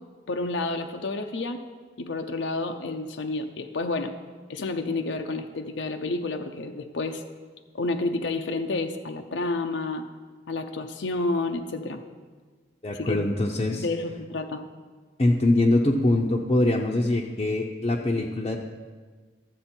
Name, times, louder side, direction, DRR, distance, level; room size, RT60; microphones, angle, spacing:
voice 1, 0.3-1.6 2.0-4.1 4.5-7.2 7.7-10.1 10.5-12.0 13.0-13.3 13.7-14.6, left 3 dB, 90° left, 5 dB, 0.7 m, -30 dB
voice 2, 12.8-13.8 15.2-18.6, left 2 dB, 30° left, -2 dB, 0.6 m, -23 dB
12.5 x 7.7 x 4.4 m, 1.5 s
head